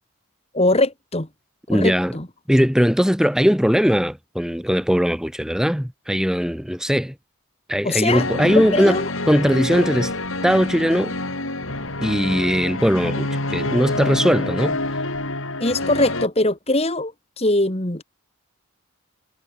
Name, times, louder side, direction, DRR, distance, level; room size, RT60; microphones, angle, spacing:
voice 1, 0.5-1.3 1.7-2.3 7.8-9.1 15.6-18.0, left 2 dB, 25° left, 2.2 m, -22 dB
voice 2, 1.7-2.2 2.5-7.1 7.7-9.0 9.3-10.1 10.4-11.1 12.0-14.8, equal, 5° right, 2.0 m, -19 dB
sound 1, 8.1-16.3, left 2 dB, 60° left, 5.3 m, -27 dB
head